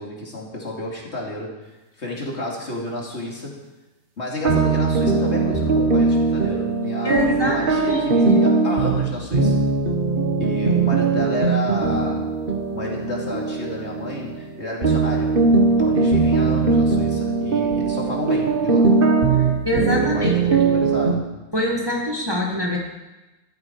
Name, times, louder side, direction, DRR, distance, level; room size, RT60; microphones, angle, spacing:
voice 1, 0.0-3.6 4.2-9.6 10.4-12.3 12.7-15.3 15.6-18.8 20.0-21.2, left 2 dB, 45° left, -2 dB, 3.0 m, -31 dB
sound 1, 4.5-14.6 14.8-21.1, right 4 dB, 40° right, 1.3 m, -20 dB
voice 2, 7.0-8.0 8.3-8.4 19.4-20.6 21.5-22.8, left 1 dB, 15° right, -1 dB, 1.7 m, -24 dB
13.5 x 13.0 x 4.7 m, 1.1 s
omnidirectional pair, 1.6 m